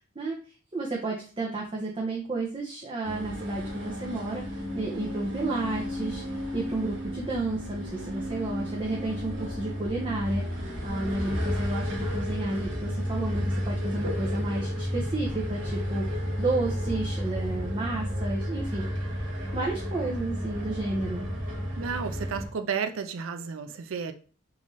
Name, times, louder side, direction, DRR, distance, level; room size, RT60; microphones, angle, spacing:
voice 1, 0.7-6.2 6.5-18.9 19.5-21.3, right 2 dB, 25° right, 0.5 m, -32 dB
sound 1, 3.0-22.5, equal, 65° right, 1.1 m, -32 dB
voice 2, 21.8-24.1, right 6 dB, 80° right, 0.4 m, -32 dB
3.7 x 2.5 x 3.1 m
head